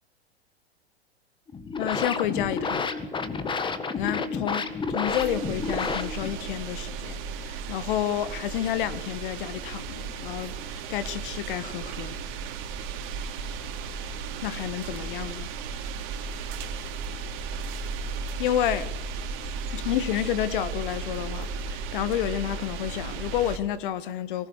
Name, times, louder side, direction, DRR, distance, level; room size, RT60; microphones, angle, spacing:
sound 1, 1.5-6.5, left 4 dB, 15° left, 1.7 m, -30 dB
voice 1, 1.8-2.9 3.9-12.2 14.4-15.5 18.4-18.9 19.7-24.5, left 11 dB, 55° left, 1.7 m, -30 dB
sound 2, 5.1-23.6, right 5 dB, 40° right, 3.3 m, -35 dB
24.0 x 19.5 x 6.6 m
figure-of-eight pair, 100°, 32 cm